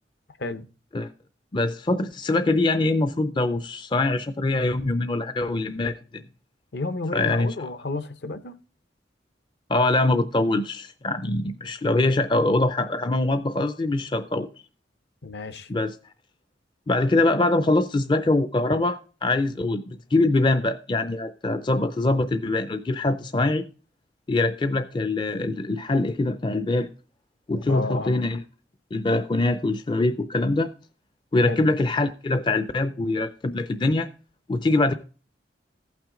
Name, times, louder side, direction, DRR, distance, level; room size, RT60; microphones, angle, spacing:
voice 1, 1.5-6.2 7.1-7.5 9.7-14.5 15.7-16.0 16.9-23.6 24.3-26.9 27.5-28.4 28.9-30.7 31.3-34.1 34.5-34.9, left 2 dB, 25° left, 0.4 m, -23 dB
voice 2, 6.7-8.6 15.2-15.7 27.7-28.2 31.4-31.6, left 2 dB, 60° left, 0.8 m, -31 dB
14.5 x 5.9 x 3.7 m
head